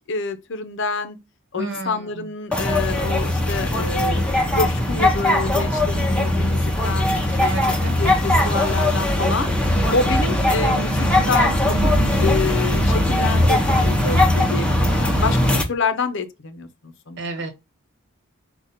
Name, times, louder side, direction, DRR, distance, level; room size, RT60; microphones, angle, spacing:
voice 1, 0.1-1.2 1.5-7.5 8.0-9.5 9.9-11.9 12.2-17.2, left 4 dB, 55° left, 0.7 m, -27 dB
voice 2, 1.6-2.3 7.4-8.0 17.2-17.5, right 2 dB, 50° right, 1.4 m, -31 dB
sound 1, 2.5-15.6, left 1 dB, 5° left, 0.7 m, -20 dB
5.0 x 2.4 x 4.1 m
head